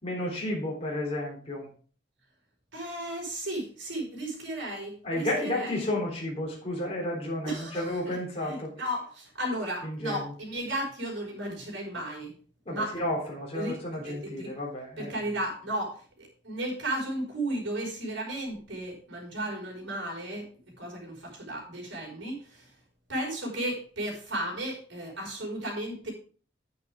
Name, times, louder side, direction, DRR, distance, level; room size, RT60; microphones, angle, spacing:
voice 1, 0.0-1.7 5.0-8.7 10.0-10.2 12.7-15.1, left 1 dB, 35° left, -3 dB, 3.5 m, -32 dB
voice 2, 2.7-5.9 7.4-12.4 12.7-13.0 13.5-14.5 15.0-20.5 20.8-22.8 23.1-26.1, right 1 dB, 75° right, 0 dB, 5.2 m, -34 dB
9.4 x 8.8 x 3.6 m, 0.41 s
head